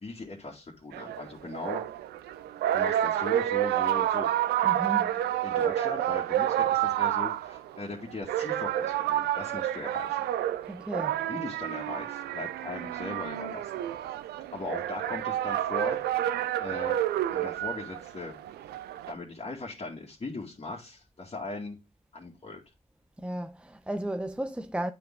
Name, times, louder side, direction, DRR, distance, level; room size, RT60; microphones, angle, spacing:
voice 1, 0.0-1.8 2.7-4.3 5.4-10.2 11.3-13.8 14.5-16.0 16.6-17.0 17.3-18.4 19.1-21.8 22.1-22.6, left 3 dB, 35° left, 2.2 m, -39 dB
sound 1, 0.9-19.1, right 12 dB, 75° right, 0.5 m, -29 dB
voice 2, 4.6-5.1 10.7-11.2 23.2-24.9, right 1 dB, 5° right, 0.6 m, -34 dB
8.3 x 4.5 x 3.7 m
hypercardioid pair, 45°, 17 cm